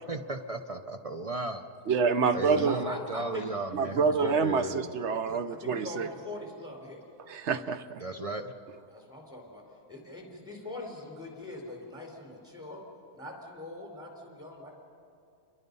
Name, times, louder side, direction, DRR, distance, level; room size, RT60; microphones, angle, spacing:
voice 1, 0.1-1.7 2.3-4.9 5.3-5.4 8.0-8.5, right 2 dB, 40° right, 7 dB, 0.5 m, -35 dB
voice 2, 1.9-2.8 3.7-6.1 7.2-8.0, right 5 dB, 55° right, 11 dB, 0.9 m, -27 dB
voice 3, 2.5-3.5 4.1-4.7 5.1-5.2 5.5-7.0 8.9-9.6 9.9-12.8 13.1-14.7, left 1 dB, ahead, 0 dB, 4.2 m, -42 dB
29.5 x 22.5 x 5.5 m, 2.6 s
omnidirectional pair, 1.6 m